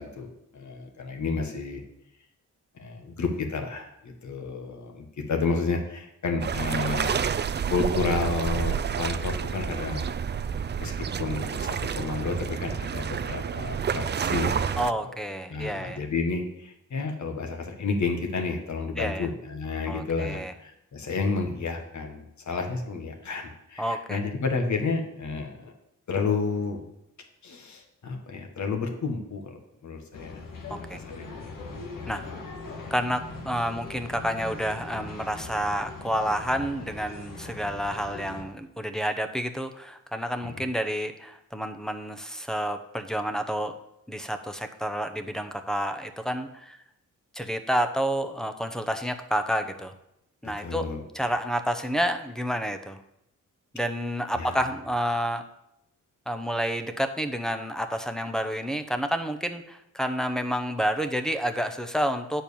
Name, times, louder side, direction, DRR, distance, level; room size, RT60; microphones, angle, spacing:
voice 1, 0.0-1.8 2.8-7.2 7.7-10.0 10.8-10.9 11.2-14.7 15.0-15.2 15.5-25.7 26.1-26.9 27.4-30.4 30.9-31.5 32.0-32.4 40.5-40.6 50.4-51.0 54.3-54.6, left 4 dB, 65° left, 3 dB, 1.6 m, -31 dB
sound 1, 6.4-14.9, right 7 dB, 35° right, 0.4 m, -29 dB
voice 2, 14.8-16.0 19.0-19.3 19.9-20.5 23.8-24.2 30.7-31.0 32.1-32.2 32.9-43.8 44.1-46.8 47.3-49.9 50.4-50.9 51.1-53.0 53.7-55.4 56.3-62.4, equal, ahead, 8 dB, 0.8 m, -29 dB
sound 2, 30.1-38.4, left 3 dB, 90° left, 1.6 m, -40 dB
9.1 x 4.5 x 7.0 m, 0.81 s
cardioid pair, 95°, 31 cm